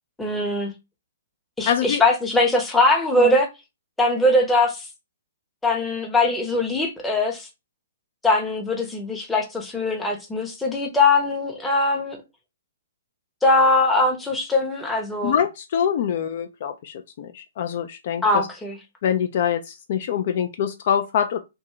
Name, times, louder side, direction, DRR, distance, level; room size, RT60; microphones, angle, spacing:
voice 1, 0.2-0.7 1.6-3.5 4.0-4.8 5.6-7.5 8.2-12.2 13.4-15.3 18.2-18.8, left 2 dB, 5° left, 0.7 m, -21 dB
voice 2, 1.7-2.0 3.2-3.4 15.2-18.5 19.0-21.4, left 8 dB, 50° left, 0.3 m, -24 dB
2.6 x 2.3 x 3.0 m
figure-of-eight pair, 120°, 0 cm